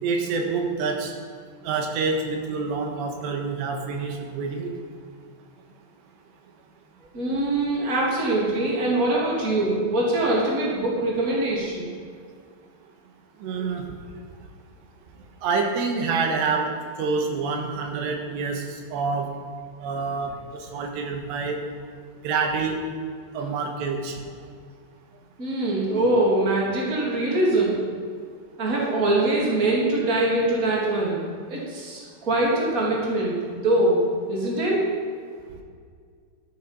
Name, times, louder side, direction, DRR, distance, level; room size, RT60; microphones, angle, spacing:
voice 1, 0.0-1.1 1.6-4.7 13.4-13.9 15.4-16.7 17.0-19.3 19.8-21.6 22.2-22.8 23.3-24.2 25.9-26.0, right 4 dB, 70° right, 3 dB, 3.4 m, -27 dB
voice 2, 7.1-11.9 25.4-27.8 28.6-34.9, right 2 dB, 20° right, -4 dB, 2.7 m, -23 dB
13.5 x 12.0 x 5.4 m, 2.1 s
omnidirectional pair, 5.6 m